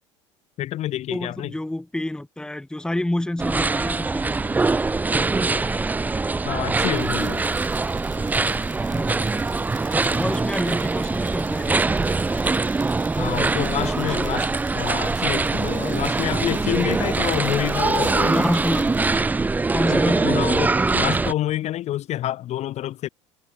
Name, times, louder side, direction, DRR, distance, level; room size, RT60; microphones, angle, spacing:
voice 1, 0.6-1.5 6.4-7.4 13.2-18.5 19.9-23.1, left 13 dB, 45° left, 1.0 m, -28 dB
voice 2, 1.1-4.5 5.1-5.6 8.9-9.5 9.8-12.0 12.3-12.5 13.1-14.5 16.7-17.0 18.2-18.9 19.7-20.3, left 1 dB, 5° left, 1.2 m, -29 dB
sound 1, 3.4-21.3, right 3 dB, 10° right, 0.5 m, -23 dB
sound 2, 6.9-19.2, right 5 dB, 90° right, 2.2 m, -47 dB
figure-of-eight pair, 70°, 16 cm